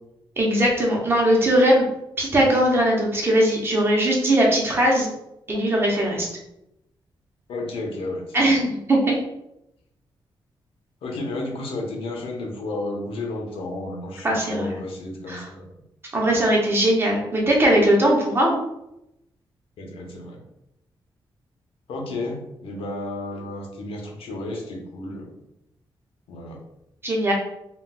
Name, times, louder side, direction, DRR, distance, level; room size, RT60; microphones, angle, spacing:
voice 1, 0.4-1.9 2.2-5.1 5.5-6.3 8.3-9.2 14.2-14.7 15.3-15.5 16.1-18.6 27.0-27.3, right 1 dB, 25° right, -2 dB, 0.6 m, -20 dB
voice 2, 7.5-8.6 11.0-15.7 16.3-16.4 19.8-20.4 21.9-25.4 26.3-26.6, left 2 dB, 85° left, 0 dB, 0.7 m, -32 dB
3.9 x 2.2 x 2.2 m, 0.85 s
wide cardioid pair, 175°, 9 cm